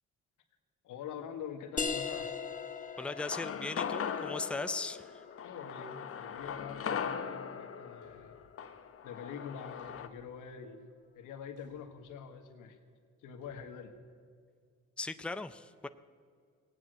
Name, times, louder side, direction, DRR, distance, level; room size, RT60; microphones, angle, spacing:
voice 1, 0.8-2.4 5.4-8.4 9.0-10.9 11.1-12.8 13.2-13.9, left 7 dB, 90° left, 5 dB, 1.6 m, -45 dB
sound 1, 1.8-7.1, left 5 dB, 25° left, 1.2 m, -41 dB
voice 2, 3.0-5.2 15.0-15.9, left 3 dB, 5° left, 10 dB, 0.6 m, -38 dB
sound 2, 3.2-10.1, left 7 dB, 50° left, 1.0 m, -39 dB
Thump thud, 6.3-6.9 8.0-8.6 9.8-10.3 11.6-12.0 13.4-13.7, equal, 85° right, 3.7 m, -64 dB
17.5 x 9.3 x 7.8 m, 2.1 s
cardioid pair, 90°, 30 cm